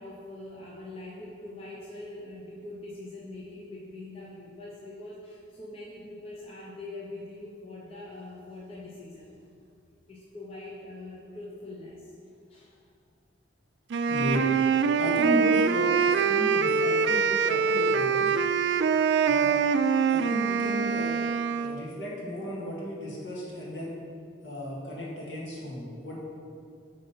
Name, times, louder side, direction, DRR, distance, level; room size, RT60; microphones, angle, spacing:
voice 1, 0.0-9.4 10.1-12.8 16.4-16.5 19.4-19.7 21.5-21.8, left 2 dB, 30° left, -4 dB, 0.8 m, -43 dB
Wind instrument woodwind instrument, 13.9-21.8, right 6 dB, 65° right, 0.3 m, -24 dB
voice 2, 14.1-14.5 15.0-18.3 19.2-19.6 20.1-21.2 21.6-24.0 24.4-26.2, equal, 65° left, -5 dB, 2.1 m, -34 dB
9.7 x 3.9 x 5.6 m, 2.4 s
head